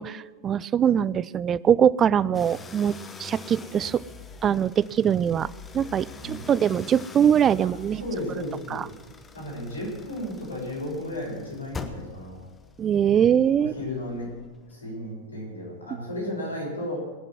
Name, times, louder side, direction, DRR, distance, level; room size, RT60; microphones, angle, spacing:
voice 1, 0.0-4.0 4.4-5.5 5.7-8.0 8.7-8.8 12.8-13.7, right 9 dB, 25° right, 21 dB, 0.3 m, -22 dB
sound 1, 2.3-14.7, left 4 dB, 15° left, 1.1 m, -44 dB
voice 2, 6.2-6.5 7.9-8.8 9.3-12.4 13.6-14.3 14.7-17.0, left 1 dB, 80° left, -3 dB, 6.1 m, -34 dB
20.0 x 6.9 x 7.7 m, 1.3 s
figure-of-eight pair, 90°, 0 cm